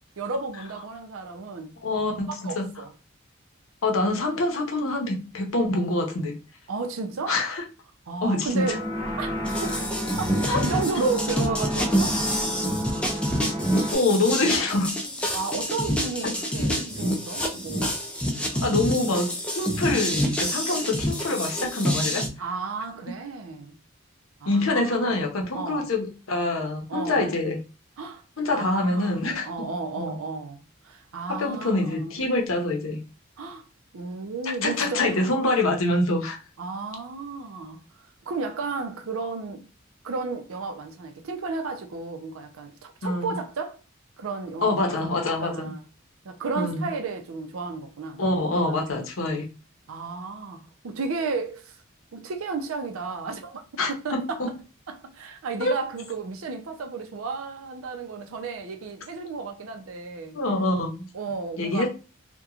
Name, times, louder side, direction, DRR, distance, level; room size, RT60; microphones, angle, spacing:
voice 1, 0.2-1.7 2.3-2.9 6.7-7.4 8.1-8.9 9.2-9.3 9.6-9.7 10.6-12.2 15.3-18.0 18.5-18.8 22.4-23.7 24.4-25.3 25.5-25.9 26.9-27.4 28.0-28.2 28.5-30.6 30.8-32.2 33.4-33.6 33.9-35.3 36.6-37.8 38.3-39.6 40.0-43.8 44.2-44.8 45.4-45.8 46.2-48.4 49.9-51.8 52.1-53.6 53.9-54.4 54.9-60.4 61.1-61.9, right 4 dB, 85° right, 0.5 m, -33 dB
voice 2, 1.8-2.7 3.8-6.3 7.3-7.6 8.2-8.7 10.5-10.6 11.0-11.1 13.9-14.9 16.2-16.3 16.8-16.9 18.6-22.3 24.5-27.6 28.4-29.7 30.0-30.1 31.3-33.0 34.4-36.4 43.0-43.4 44.6-45.7 46.6-46.9 48.2-49.4 53.8-54.5 55.6-55.7 60.3-61.1 61.6-61.9, left 2 dB, 90° left, 0.7 m, -25 dB
sound 1, 8.6-14.0, equal, 25° right, 0.8 m, -31 dB
sound 2, 9.4-22.3, equal, 5° left, 0.4 m, -27 dB
2.9 x 2.2 x 2.3 m
head